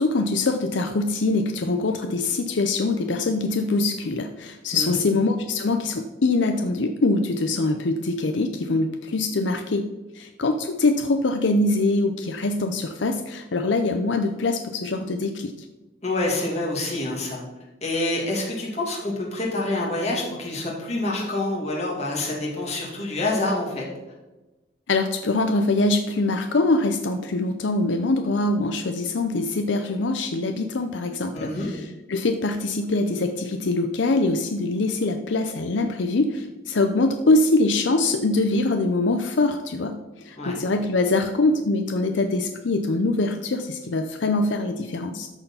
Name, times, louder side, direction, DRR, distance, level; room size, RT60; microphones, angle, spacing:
voice 1, 0.0-9.9 10.1-15.5 24.9-45.3, left 2 dB, 80° left, 6 dB, 0.6 m, -23 dB
voice 2, 16.0-17.4 17.8-23.8 31.3-31.7 40.4-40.5, left 2 dB, 35° left, -3 dB, 2.4 m, -27 dB
13.0 x 4.5 x 5.6 m, 1.1 s
head